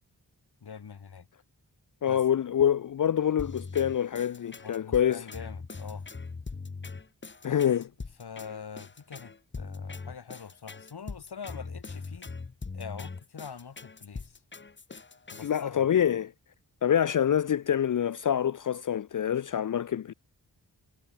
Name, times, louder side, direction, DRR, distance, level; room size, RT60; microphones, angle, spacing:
voice 1, 0.6-1.3 2.1-2.2 4.6-6.0 7.4-7.6 8.2-12.3 12.7-14.4 15.3-15.9, left 6 dB, 75° left, 4.0 m, -44 dB
voice 2, 2.0-5.2 7.4-7.8 15.4-16.3 16.8-20.1, left 9 dB, 55° left, 0.5 m, -26 dB
sound 1, 3.4-15.6, left 4 dB, 30° left, 1.1 m, -41 dB
wide cardioid pair, 70°, 39 cm